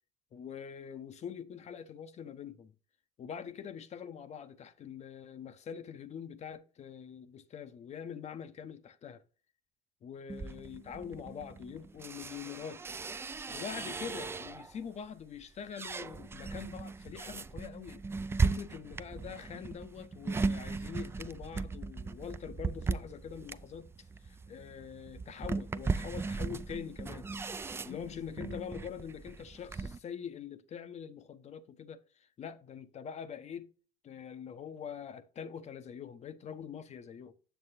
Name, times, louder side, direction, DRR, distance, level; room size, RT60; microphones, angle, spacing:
voice 1, 0.3-2.7 3.2-9.2 10.0-12.8 13.5-18.0 18.4-27.3 27.8-33.7 34.0-37.3, left 7 dB, 35° left, 0.6 m, -44 dB
sound 1, 10.3-14.8 15.3-30.0, right 4 dB, 15° right, 0.3 m, -37 dB
8.0 x 7.2 x 2.6 m
hypercardioid pair, 60°, 19 cm